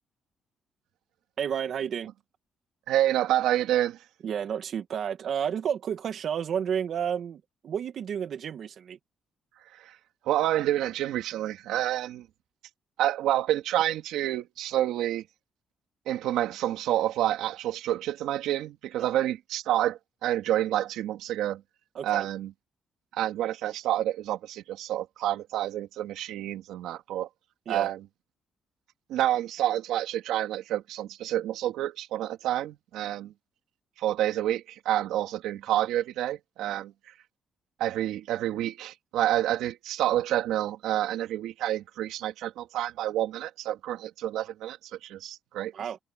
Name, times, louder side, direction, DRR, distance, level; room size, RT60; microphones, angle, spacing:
voice 1, 1.4-2.1 4.2-9.0 21.9-22.3 27.7-27.9 45.7-46.0, right 8 dB, 65° right, 1.9 m, -31 dB
voice 2, 2.9-4.0 9.8-9.9 10.3-12.3 13.0-15.2 16.1-21.6 22.0-22.5 23.1-27.3 27.7-28.0 29.1-33.3 34.0-36.9 37.8-45.7, right 13 dB, 90° right, 2.5 m, -28 dB
cardioid pair, 90°, 0 cm